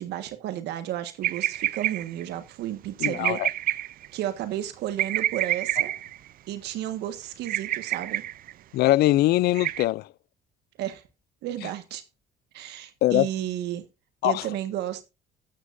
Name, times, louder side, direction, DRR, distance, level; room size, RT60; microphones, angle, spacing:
voice 1, 0.0-3.4 4.1-5.9 6.5-8.2 10.8-11.0 11.4-12.0 12.5-13.8 14.2-15.0, right 12 dB, 80° right, 1.5 m, -32 dB
sound 1, 1.2-2.2 3.0-4.1 5.0-6.2 7.4-8.5 9.5-9.8, right 13 dB, 60° right, 0.5 m, -28 dB
voice 2, 3.0-3.5 8.7-10.1 13.0-13.3 14.2-14.5, left 16 dB, 70° left, 0.5 m, -22 dB
13.0 x 9.8 x 2.6 m
cardioid pair, 110°, 17 cm